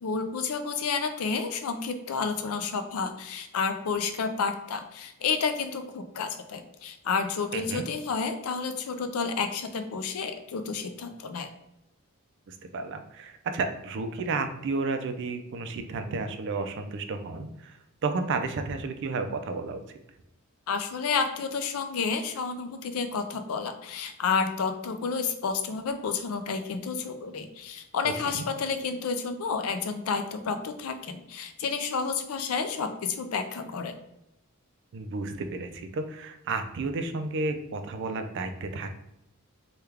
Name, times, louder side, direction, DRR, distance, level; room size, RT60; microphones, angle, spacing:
voice 1, 0.0-11.5 20.7-33.9, left 5 dB, 75° left, 7 dB, 0.4 m, -30 dB
voice 2, 7.5-7.8 12.5-19.8 28.0-28.4 34.9-39.0, right 3 dB, 55° right, 7 dB, 0.3 m, -32 dB
3.3 x 2.3 x 3.3 m, 0.86 s
head